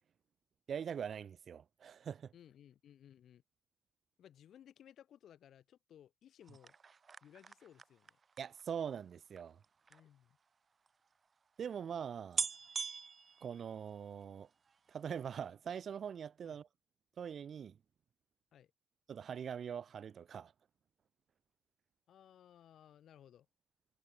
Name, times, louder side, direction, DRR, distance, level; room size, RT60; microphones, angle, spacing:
voice 1, 0.7-2.3 8.4-9.6 11.6-12.4 13.4-14.5 14.9-16.7 17.2-17.8 19.1-20.5, right 7 dB, 55° right, 1.2 m, -42 dB
voice 2, 2.3-3.4 4.2-6.7 7.2-8.2 9.9-10.4 16.4-16.6 18.5-18.7 22.1-23.5, left 10 dB, 70° left, 5.3 m, -60 dB
sound 1, 6.4-10.0 10.9-11.0 11.1-11.2 11.9-12.0 12.3-14.3 14.7-15.1 15.3-15.4, right 5 dB, 40° right, 0.4 m, -43 dB
cardioid pair, 90°, 0 cm